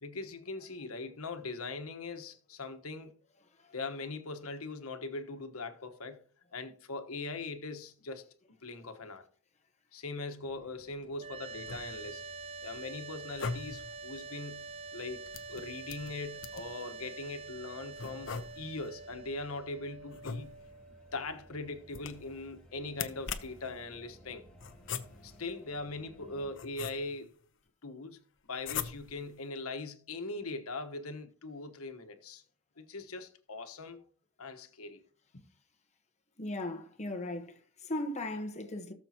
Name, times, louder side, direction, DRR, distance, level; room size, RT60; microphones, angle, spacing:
voice 1, 0.0-3.1 3.7-6.2 6.5-8.2 8.6-9.2 9.9-12.3 12.6-18.3 18.5-20.6 20.9-24.5 25.2-27.4 27.8-32.4 32.8-34.0 34.4-35.0 35.3-35.4, left 3 dB, 85° left, 1.3 m, -41 dB
sound 1, 10.4-26.5, equal, 5° left, 2.4 m, -60 dB
sound 2, 11.2-22.3, right 4 dB, 30° right, 0.4 m, -46 dB
sound 3, 11.5-12.2 13.2-14.0 15.3-16.8 18.0-18.9 20.1-20.9 21.9-22.4 22.9-23.7 24.6-25.4 26.2-27.3 28.6-29.3, left 6 dB, 60° left, 0.9 m, -41 dB
voice 2, 36.4-38.9, left 1 dB, 30° left, 1.2 m, -37 dB
18.0 x 7.0 x 2.9 m
head